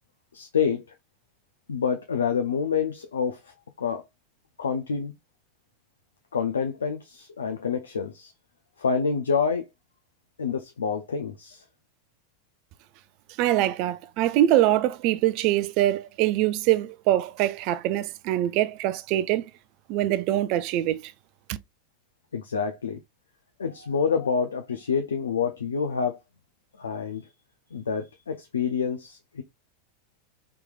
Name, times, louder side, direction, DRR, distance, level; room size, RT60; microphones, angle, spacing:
voice 1, 0.3-0.8 1.7-3.4 3.8-4.0 4.6-5.1 6.3-8.3 8.8-9.6 10.4-11.6 22.3-23.0 23.6-26.2 26.8-27.3 27.7-29.4, left 6 dB, 85° left, 0.5 m, -27 dB
voice 2, 13.4-19.5 19.9-21.1 21.5-21.6, right 13 dB, 55° right, 0.4 m, -24 dB
3.5 x 3.0 x 2.3 m
hypercardioid pair, 95°, 0 cm